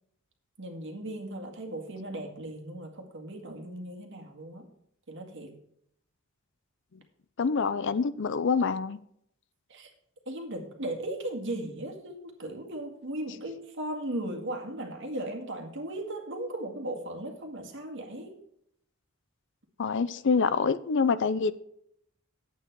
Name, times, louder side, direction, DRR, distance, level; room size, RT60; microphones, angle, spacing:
voice 1, 0.6-4.7 5.1-5.5 9.7-9.9 10.3-18.4, right 1 dB, 60° right, 2.0 m, -37 dB
voice 2, 7.4-9.0 19.8-21.5, left 5 dB, 55° left, 0.5 m, -26 dB
10.0 x 8.4 x 4.6 m
head